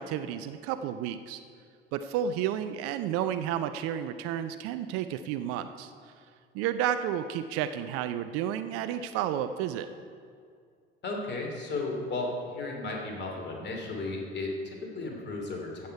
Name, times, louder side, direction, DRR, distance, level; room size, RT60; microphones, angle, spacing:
voice 1, 0.0-1.4 1.9-6.1 6.5-9.9, right 10 dB, 50° right, 10 dB, 0.5 m, -31 dB
voice 2, 11.0-15.9, left 2 dB, 35° left, 1 dB, 2.7 m, -34 dB
14.0 x 8.5 x 4.6 m, 2.2 s
figure-of-eight pair, 60°, 31 cm